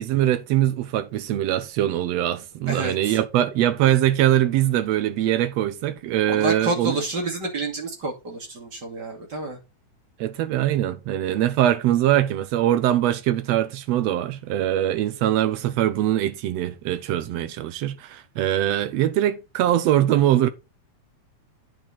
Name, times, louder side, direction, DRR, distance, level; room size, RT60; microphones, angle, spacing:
voice 1, 0.0-7.0 10.2-20.5, right 12 dB, 70° right, 1.9 m, -22 dB
voice 2, 2.7-3.2 3.8-3.9 6.3-9.6, right 2 dB, 35° right, 2.9 m, -29 dB
9.3 x 6.1 x 4.1 m
omnidirectional pair, 3.3 m